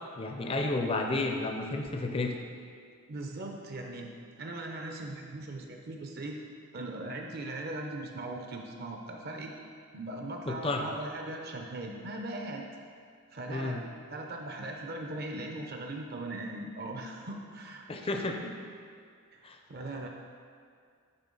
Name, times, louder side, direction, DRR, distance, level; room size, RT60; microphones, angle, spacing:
voice 1, 0.2-2.4 10.5-10.9 13.5-13.8 17.9-18.6 19.4-19.6, left 2 dB, 25° left, 3 dB, 0.4 m, -31 dB
voice 2, 3.1-4.1 4.4-6.4 6.7-9.5 9.9-12.6 13.3-13.8 14.1-17.9 19.3-20.1, right 2 dB, 45° right, 2 dB, 0.5 m, -39 dB
9.9 x 3.6 x 3.8 m, 2.2 s
head